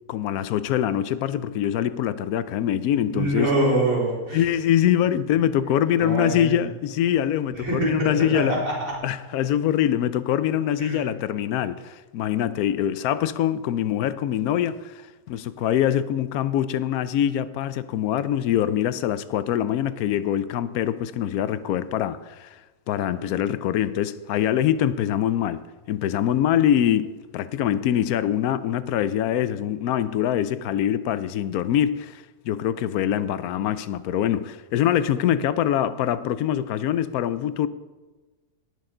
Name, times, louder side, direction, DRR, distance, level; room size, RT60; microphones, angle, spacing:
voice 1, 0.1-3.5 4.3-8.6 9.0-15.0 15.3-22.6 22.9-25.6 25.9-37.7, left 10 dB, 85° left, 1.1 m, -24 dB
voice 2, 3.1-4.4 6.0-6.7 7.5-8.9 10.8-11.0, right 1 dB, 65° right, 4.3 m, -25 dB
18.5 x 6.6 x 3.8 m
omnidirectional pair, 1.5 m